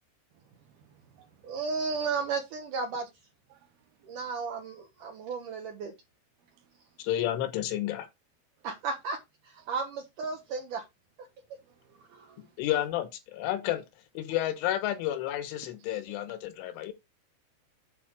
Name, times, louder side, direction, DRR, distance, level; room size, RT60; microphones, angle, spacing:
voice 1, 1.4-3.1 4.0-5.9 8.6-9.2 9.4-10.8 12.1-12.4, right 4 dB, 90° right, 1.8 m, -34 dB
voice 2, 3.5-4.3 6.4-7.1 8.6-8.7 9.6-9.7 11.6-12.7 15.8-16.2 16.6-16.9, right 11 dB, 65° right, 2.4 m, -64 dB
voice 3, 7.0-8.1 12.6-13.8 14.1-16.9, left 13 dB, 80° left, 3.3 m, -31 dB
8.7 x 5.2 x 4.8 m
omnidirectional pair, 5.8 m